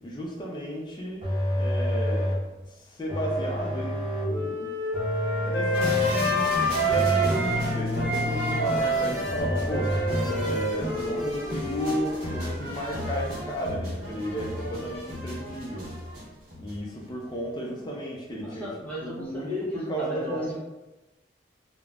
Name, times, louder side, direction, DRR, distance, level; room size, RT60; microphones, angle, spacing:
voice 1, 0.0-1.3 1.5-2.4 2.7-4.7 5.4-10.0 10.4-15.9 16.6-18.7 19.0-20.6, equal, 25° left, -2 dB, 0.4 m, -34 dB
sound 1, 1.2-2.5 3.1-4.4 4.9-6.4 6.9-8.8 9.2-10.6, left 1 dB, 30° right, 0.5 m, -29 dB
Wind instrument woodwind instrument, 3.1-7.6 7.9-12.4, right 1 dB, 65° left, 0.7 m, -29 dB
sound 2, 5.7-16.9 17.2-17.3, equal, 55° right, 1.2 m, -34 dB
voice 2, 10.1-10.5 17.7-17.9 18.4-20.6, left 1 dB, 10° left, -8 dB, 0.8 m, -35 dB
3.3 x 2.0 x 2.3 m, 1.0 s
head